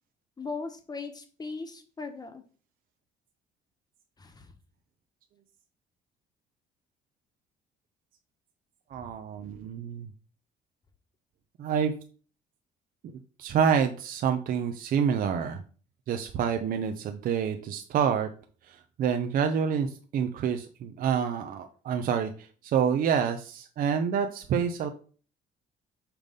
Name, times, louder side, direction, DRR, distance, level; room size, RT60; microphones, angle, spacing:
voice 1, 0.4-2.4 4.2-4.5 9.0-9.1, left 4 dB, 25° left, 7 dB, 1.2 m, -38 dB
voice 2, 8.9-10.1 11.6-11.9 13.4-15.6 16.1-18.3 18.7-24.9, right 7 dB, 55° right, 6 dB, 0.7 m, -27 dB
5.9 x 3.5 x 5.2 m, 0.40 s
cardioid pair, 110°, 17 cm